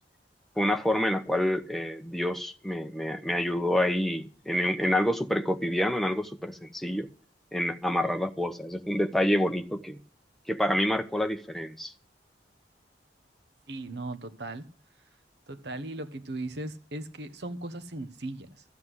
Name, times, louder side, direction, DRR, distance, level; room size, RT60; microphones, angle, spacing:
voice 1, 0.6-7.1 7.5-10.0 10.5-11.9, left 1 dB, ahead, 0.8 m, -27 dB
voice 2, 13.7-14.7 15.5-18.6, right 2 dB, 70° right, 1.2 m, -37 dB
13.5 x 7.9 x 8.0 m
head